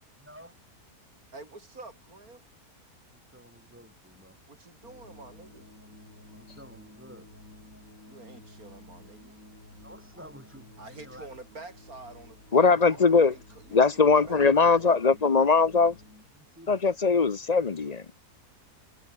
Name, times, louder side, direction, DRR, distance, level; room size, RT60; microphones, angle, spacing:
voice 1, 0.2-0.6 3.1-4.4 6.2-7.3 9.8-11.3 16.4-16.8, equal, 10° right, 2.9 m, -51 dB
voice 2, 1.3-2.4 4.5-5.7 8.1-9.4 10.1-10.3 10.8-14.9, right 3 dB, 70° right, 5.1 m, -48 dB
sound 1, 4.8-16.3, left 1 dB, 60° left, 8.1 m, -52 dB
voice 3, 12.5-13.3 13.7-16.0 16.7-18.0, left 4 dB, 35° left, 0.8 m, -21 dB
omnidirectional pair, 1.6 m